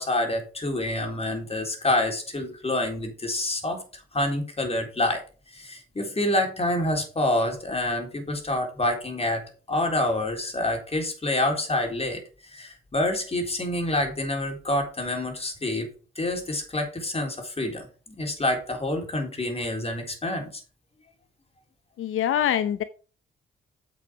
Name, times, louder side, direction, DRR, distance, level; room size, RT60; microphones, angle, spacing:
voice 1, 0.0-3.8 4.1-5.2 5.5-12.2 12.5-15.9 16.2-20.6, left 1 dB, 30° left, 3 dB, 3.9 m, -27 dB
voice 2, 22.0-22.8, left 10 dB, 80° left, 12 dB, 0.7 m, -24 dB
8.5 x 6.4 x 6.0 m, 0.37 s
cardioid pair, 75°, 21 cm